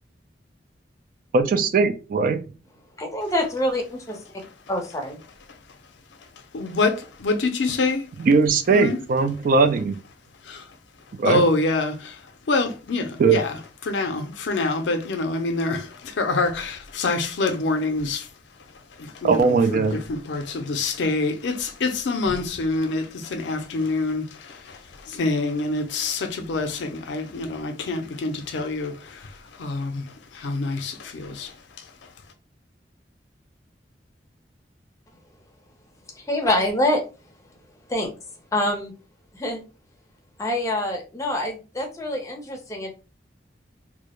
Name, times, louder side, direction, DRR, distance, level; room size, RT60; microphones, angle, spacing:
voice 1, 1.3-2.4 8.2-10.0 11.2-11.4 13.2-13.4 19.2-20.0, right 4 dB, 50° right, 0.3 m, -19 dB
voice 2, 3.0-4.2 4.7-5.2 36.2-37.0 37.9-38.1 38.5-38.9 39.3-39.6 40.4-42.9, left 1 dB, 20° left, 0.6 m, -25 dB
voice 3, 6.5-8.0 8.7-9.0 10.5-10.6 11.3-12.1 12.5-13.6 13.8-18.3 19.0-19.4 19.7-24.8 25.1-29.2 29.6-30.1 30.3-31.5, left 3 dB, 85° left, 0.5 m, -26 dB
2.2 x 2.0 x 2.9 m
head